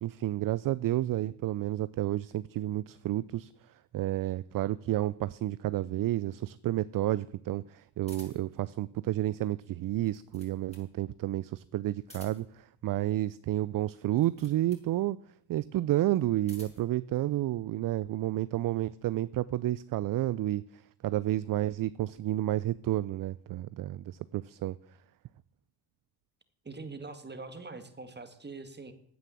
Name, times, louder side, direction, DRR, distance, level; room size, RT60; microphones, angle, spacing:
voice 1, 0.0-3.5 3.9-15.2 15.5-20.6 21.0-24.8, right 14 dB, 45° right, 18 dB, 0.5 m, -31 dB
sound 1, 8.1-8.6 9.9-10.9 12.0-12.6 14.1-14.9 16.1-16.9, left 1 dB, 15° left, 6.2 m, -53 dB
voice 2, 26.6-28.9, right 3 dB, 20° right, 9 dB, 2.0 m, -43 dB
9.5 x 9.3 x 7.5 m, 0.68 s
supercardioid pair, 65°, 48 cm